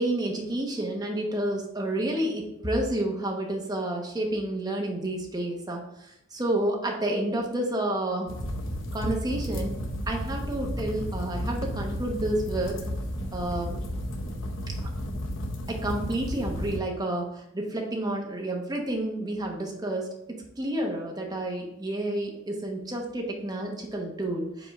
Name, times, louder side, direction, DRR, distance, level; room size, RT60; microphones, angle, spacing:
voice 1, 0.0-8.3 8.9-9.8 10.1-12.8 13.3-13.8 14.8-14.9 15.7-24.7, right 1 dB, 20° right, 0 dB, 1.0 m, -30 dB
sound 1, 8.3-16.8, equal, 80° left, 0.8 m, -33 dB
5.0 x 3.8 x 4.9 m, 0.78 s
head